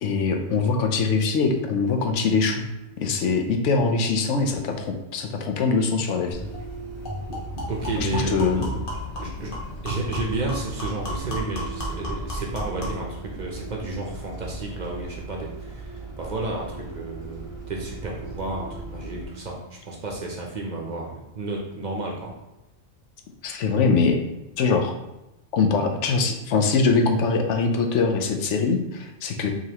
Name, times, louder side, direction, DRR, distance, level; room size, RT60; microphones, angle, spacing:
voice 1, 0.0-2.7 3.0-4.9 5.1-6.4 8.0-8.7 23.4-24.2 24.6-24.9 25.5-29.5, left 4 dB, 85° left, 4 dB, 0.9 m, -22 dB
Bus, 6.3-19.2, right 2 dB, 25° left, 1.4 m, -37 dB
sound 1, 6.5-6.7 7.0-13.1, left 1 dB, 50° left, 1.2 m, -34 dB
voice 2, 7.7-8.9 9.2-9.6 9.8-22.3, right 2 dB, 45° right, -1 dB, 0.7 m, -32 dB
4.9 x 2.9 x 2.9 m, 0.94 s
omnidirectional pair, 1.2 m